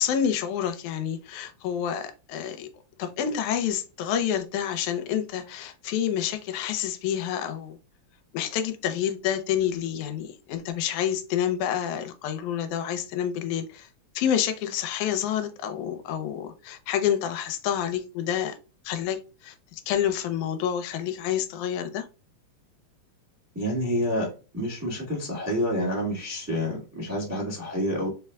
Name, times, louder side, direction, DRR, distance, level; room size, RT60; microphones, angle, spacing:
voice 1, 0.0-2.7 3.0-7.8 8.3-13.9 14.2-18.6 18.9-22.1, left 9 dB, 85° left, 2.0 m, -28 dB
voice 2, 23.5-28.1, equal, 10° right, 0.9 m, -28 dB
4.7 x 3.3 x 2.3 m
omnidirectional pair, 3.4 m